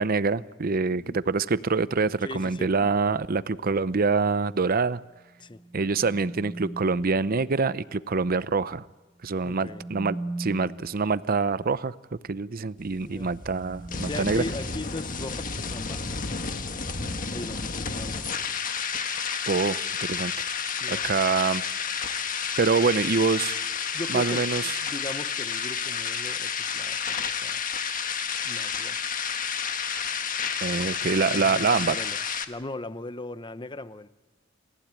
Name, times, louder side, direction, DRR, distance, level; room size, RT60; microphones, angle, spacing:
voice 1, 0.0-5.0 5.7-8.8 9.2-11.9 12.3-14.4 19.5-20.3 20.9-21.6 22.6-23.6 24.1-24.6 30.6-32.0, right 4 dB, 50° right, 16 dB, 0.6 m, -25 dB
voice 2, 2.2-2.9 5.4-5.6 9.4-9.8 13.0-13.3 14.0-16.1 17.3-18.6 20.8-21.0 23.9-27.6 28.4-29.0 31.3-32.2 32.5-34.1, left 2 dB, 25° left, 13 dB, 0.8 m, -38 dB
sound 1, 5.2-7.1 9.2-10.9 12.9-15.3, right 2 dB, 30° right, 3.0 m, -40 dB
sound 2, 12.8-32.4, left 6 dB, 45° left, 1.5 m, -31 dB
28.0 x 15.0 x 9.0 m, 1.2 s
head